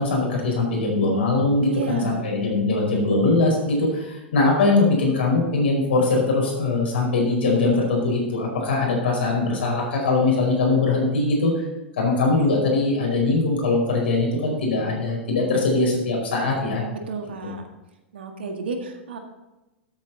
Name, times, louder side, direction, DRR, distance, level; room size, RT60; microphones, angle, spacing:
voice 1, 0.0-11.6 12.0-16.8, left 3 dB, 65° left, -1 dB, 5.0 m, -21 dB
voice 2, 1.6-2.3 16.9-17.7 18.1-19.2, right 4 dB, 65° right, 4 dB, 1.8 m, -31 dB
13.5 x 8.8 x 4.1 m, 1.0 s
figure-of-eight pair, 95°, 6 cm